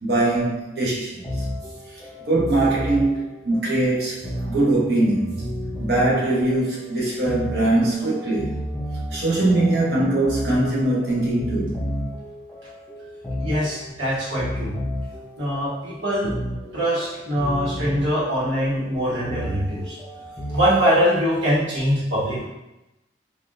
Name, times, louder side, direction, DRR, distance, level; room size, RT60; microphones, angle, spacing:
voice 1, 0.0-1.5 1.9-5.5 5.8-8.6 9.1-11.7, right 2 dB, 60° right, -6 dB, 0.8 m, -22 dB
sound 1, 1.2-20.6, equal, 10° left, 0.5 m, -33 dB
voice 2, 13.4-14.7 15.4-16.3 16.7-19.9 20.5-22.5, equal, 90° right, -8 dB, 1.3 m, -23 dB
3.4 x 2.4 x 2.5 m, 0.96 s
head